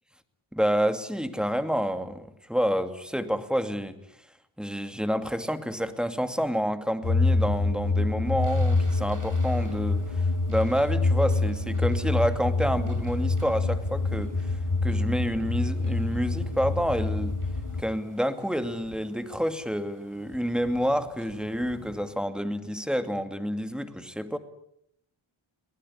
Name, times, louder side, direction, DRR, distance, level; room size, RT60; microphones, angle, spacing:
voice 1, 0.5-4.0 4.6-10.0 10.5-14.3 14.8-17.4 17.8-24.4, equal, ahead, 9 dB, 2.5 m, -28 dB
sound 1, 7.0-17.8, left 3 dB, 85° left, 2.9 m, -26 dB
sound 2, 8.4-22.1, right 2 dB, 40° right, 5.9 m, -49 dB
23.5 x 19.0 x 10.0 m, 0.75 s
wide cardioid pair, 50°, 49 cm